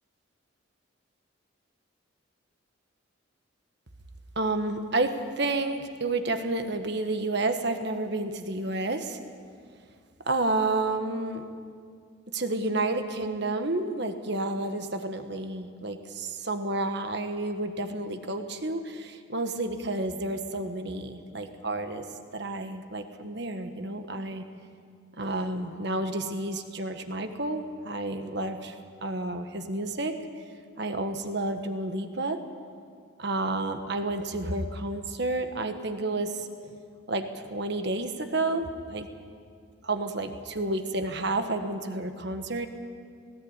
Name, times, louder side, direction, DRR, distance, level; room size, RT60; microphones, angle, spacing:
voice 1, 4.3-9.2 10.2-11.4 12.3-22.0 22.3-24.4 25.2-28.7 29.0-30.2 30.8-32.4 33.2-36.7 37.1-39.1 39.8-42.7, right 2 dB, 55° right, 7 dB, 1.4 m, -30 dB
18.0 x 18.0 x 8.9 m, 2.2 s
head